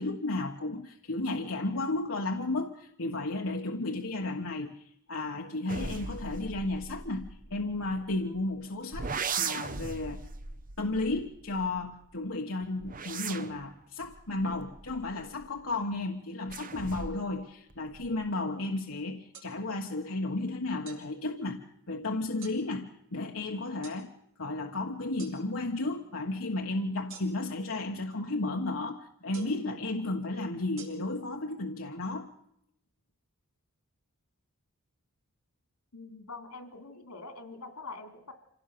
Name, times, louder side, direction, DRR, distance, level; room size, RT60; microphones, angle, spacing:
voice 1, 0.0-4.8 5.1-9.1 9.4-10.3 10.8-21.6 21.9-24.1 24.4-32.3, left 2 dB, 65° left, 2 dB, 1.4 m, -33 dB
sound 1, 5.7-8.4 8.9-12.0 12.6-15.7 16.5-17.4 17.7-18.3, right 5 dB, 40° right, 0.9 m, -39 dB
sound 2, 19.3-19.5 20.9-21.0 22.4-22.6 23.8-24.0 25.2-25.4 27.1-27.5 29.3-29.6 30.8-30.9, right 6 dB, 60° right, 4.8 m, -47 dB
voice 2, 35.9-38.3, left 3 dB, 90° left, 8 dB, 3.1 m, -44 dB
26.0 x 17.5 x 6.9 m, 0.76 s
head